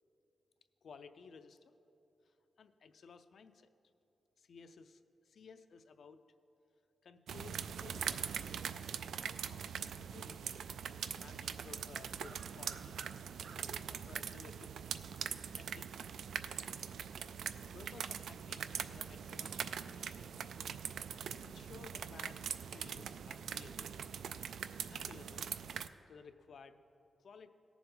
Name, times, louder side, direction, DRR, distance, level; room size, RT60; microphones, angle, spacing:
voice 1, 0.8-1.6 2.3-3.7 4.4-6.2 7.0-8.6 9.1-10.4 11.1-13.0 13.5-14.7 15.2-15.3 15.5-15.9 17.3-17.4 17.7-20.3 21.3-22.4 22.7-23.9 24.9-25.5 26.1-26.8 27.2-27.5, left 5 dB, 60° left, 10 dB, 0.5 m, -57 dB
sound 1, 7.3-25.9, right 7 dB, 90° right, 0.3 m, -42 dB
18.0 x 7.0 x 3.8 m, 2.9 s
wide cardioid pair, 165°, 0 cm